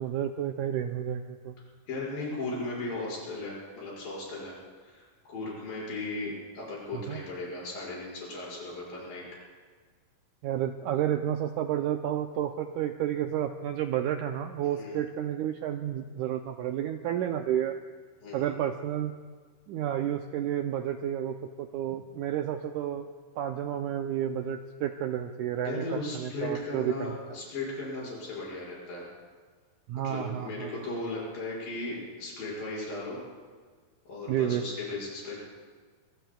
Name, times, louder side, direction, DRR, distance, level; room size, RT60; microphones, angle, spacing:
voice 1, 0.0-1.6 6.9-7.2 10.4-17.8 18.3-19.1 19.7-23.1 23.4-27.1 29.9-30.7 34.3-34.6, right 10 dB, 90° right, 5 dB, 1.7 m, -31 dB
voice 2, 1.9-4.6 4.8-5.0 5.3-9.2 14.7-14.9 18.2-18.5 25.7-29.1 30.0-33.2 34.1-35.4, left 2 dB, 70° left, -6 dB, 7.3 m, -36 dB
24.5 x 23.0 x 2.3 m, 1.6 s
omnidirectional pair, 4.2 m